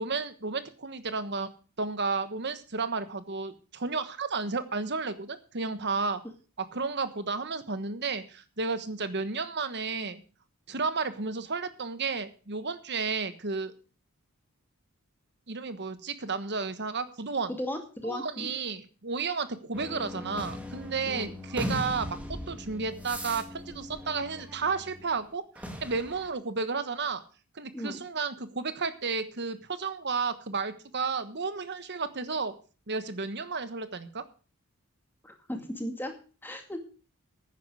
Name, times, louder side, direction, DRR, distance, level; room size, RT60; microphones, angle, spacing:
voice 1, 0.0-1.5 1.8-6.2 6.6-10.2 10.7-13.7 15.5-17.5 18.0-22.2 22.5-27.2 27.5-32.5 32.9-34.2, right 4 dB, 50° right, 11 dB, 1.3 m, -32 dB
voice 2, 17.6-18.5 21.1-21.3 27.7-28.0 35.2-36.8, equal, 10° left, 4 dB, 2.2 m, -36 dB
sound 1, 19.7-25.1 25.6-26.3, left 1 dB, 5° right, 2.0 m, -39 dB
10.5 x 9.5 x 6.3 m, 0.36 s
head